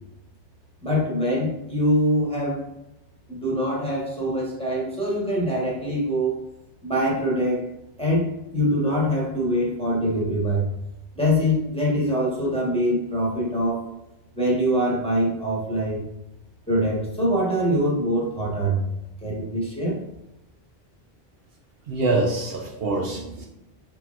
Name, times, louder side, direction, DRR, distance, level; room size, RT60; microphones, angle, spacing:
voice 1, 0.8-2.7 3.3-6.4 6.8-7.6 8.0-10.7 11.1-13.8 14.3-16.1 16.7-18.9 19.2-20.0, equal, 5° left, -5 dB, 1.1 m, -24 dB
voice 2, 21.9-23.5, right 2 dB, 65° right, 0 dB, 0.8 m, -25 dB
4.4 x 3.8 x 2.4 m, 0.89 s
omnidirectional pair, 1.1 m